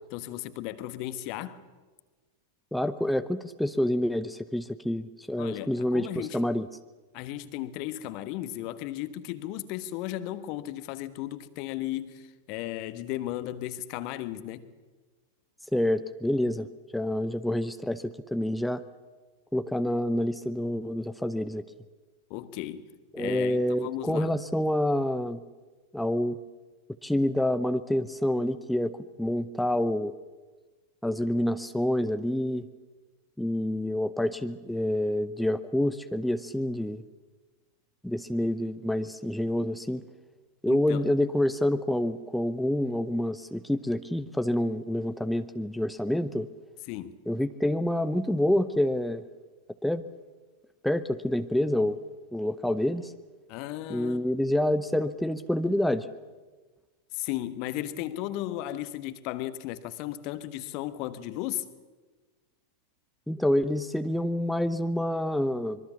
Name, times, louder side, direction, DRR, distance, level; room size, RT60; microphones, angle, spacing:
voice 1, 0.1-1.6 5.4-6.5 7.1-14.6 22.3-22.9 23.2-24.4 40.7-41.1 46.9-47.2 53.5-54.2 57.1-61.6, left 14 dB, 45° left, 1.3 m, -35 dB
voice 2, 2.7-6.7 15.7-16.7 16.9-18.8 19.5-21.6 23.1-25.4 25.9-26.4 27.0-30.1 31.0-32.7 33.4-37.0 38.0-40.0 40.6-46.5 47.3-49.2 49.8-50.0 50.8-52.0 52.3-53.1 53.9-56.1 63.3-65.8, left 1 dB, ahead, 0.8 m, -27 dB
25.0 x 23.0 x 7.1 m
figure-of-eight pair, 90°, 0 cm